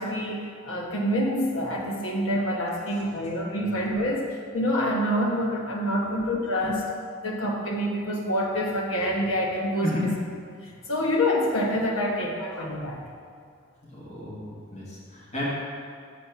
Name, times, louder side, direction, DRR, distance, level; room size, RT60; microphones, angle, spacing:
voice 1, 0.0-6.8 7.2-10.1 10.6-13.0, equal, 75° left, 0 dB, 1.0 m, -27 dB
voice 2, 13.9-14.4 14.7-15.5, left 1 dB, 35° left, -6 dB, 1.5 m, -32 dB
6.5 x 4.3 x 5.7 m, 2.2 s
head